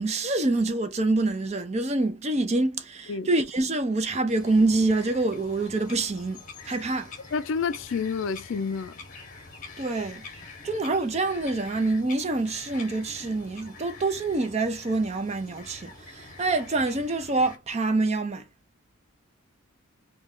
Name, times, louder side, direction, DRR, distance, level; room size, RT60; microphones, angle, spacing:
voice 1, 0.0-7.1 9.8-10.3 10.6-18.4, right 2 dB, 30° right, 0.5 m, -26 dB
Bird vocalization bird call bird song, 4.3-17.6, left 3 dB, 35° left, 0.8 m, -45 dB
voice 2, 7.3-9.0, left 5 dB, 60° left, 0.3 m, -29 dB
3.1 x 2.3 x 3.7 m
head